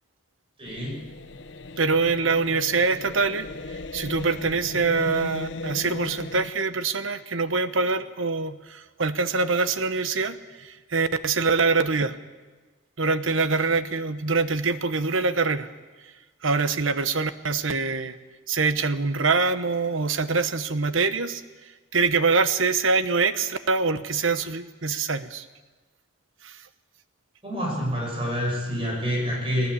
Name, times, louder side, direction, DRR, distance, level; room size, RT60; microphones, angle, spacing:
voice 1, 0.6-1.0 27.4-29.7, equal, 25° right, -2 dB, 6.3 m, -27 dB
sound 1, 0.7-6.5, left 2 dB, 65° left, 0.9 m, -37 dB
voice 2, 1.8-12.1 13.0-15.7 16.4-18.2 18.5-21.4 21.9-25.5 26.4-26.6, right 4 dB, 80° right, 12 dB, 1.1 m, -24 dB
19.5 x 18.0 x 8.5 m, 1.3 s
head